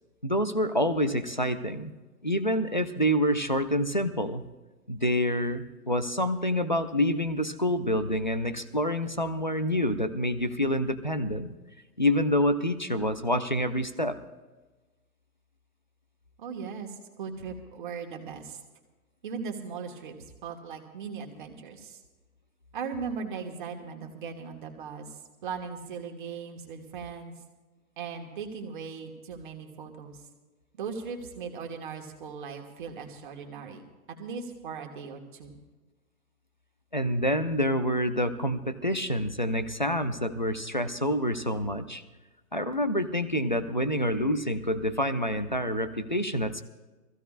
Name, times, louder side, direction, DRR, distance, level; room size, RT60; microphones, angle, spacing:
voice 1, 0.2-1.9 2.2-4.4 4.9-11.5 12.0-14.2 36.9-42.0 42.5-46.6, equal, 35° left, 10 dB, 0.4 m, -27 dB
voice 2, 16.4-18.6 19.2-20.2 20.4-22.0 22.7-27.3 28.0-30.2 30.7-33.8 34.1-35.6, right 5 dB, 30° right, 3 dB, 1.7 m, -38 dB
24.0 x 15.5 x 2.5 m, 1.2 s
hypercardioid pair, 165°, 48 cm